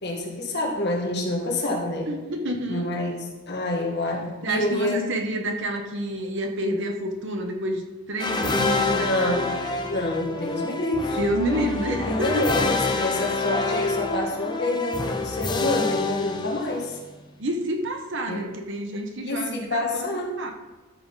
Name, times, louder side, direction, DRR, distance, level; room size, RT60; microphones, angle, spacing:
voice 1, 0.0-2.1 2.7-5.0 8.9-9.5 9.9-11.2 11.9-17.0 18.3-18.5 19.2-20.5, left 1 dB, 50° left, 0 dB, 1.8 m, -27 dB
voice 2, 2.1-2.9 4.4-9.4 11.2-12.5 17.4-20.5, right 1 dB, 55° right, 4 dB, 1.1 m, -29 dB
sound 1, 8.2-17.1, left 3 dB, 20° left, 0.6 m, -27 dB
13.5 x 5.8 x 4.0 m, 1.2 s
head